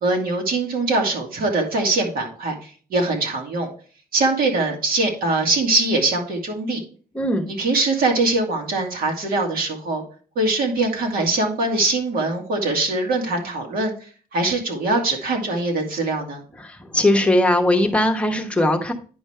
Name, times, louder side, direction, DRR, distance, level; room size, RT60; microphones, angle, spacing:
voice 1, 0.0-3.7 4.1-6.8 7.5-10.0 10.4-13.9 14.3-16.4, right 2 dB, 70° right, 1 dB, 2.4 m, -22 dB
voice 2, 7.1-7.5 16.6-18.9, left 1 dB, 5° left, 3 dB, 1.0 m, -19 dB
10.0 x 5.3 x 3.3 m, 0.41 s
cardioid pair, 145°, 16 cm